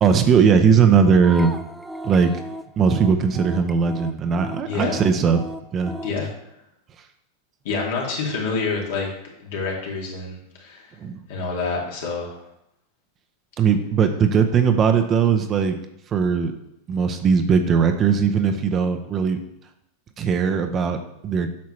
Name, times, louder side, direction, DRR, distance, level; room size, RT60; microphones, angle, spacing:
voice 1, 0.0-1.6 2.0-2.3 2.8-5.4 5.7-5.9 11.0-11.2 13.6-15.8 16.1-16.5 16.9-19.4 20.2-21.5, right 6 dB, 35° right, 7 dB, 0.8 m, -19 dB
sound 1, 1.2-6.2, equal, 5° right, 0.4 m, -36 dB
voice 2, 4.6-5.0 6.0-6.3 7.6-9.1 9.4-11.0 11.3-12.4, left 4 dB, 70° left, -2 dB, 2.4 m, -27 dB
8.5 x 5.8 x 3.2 m, 0.81 s
hypercardioid pair, 110°, 0 cm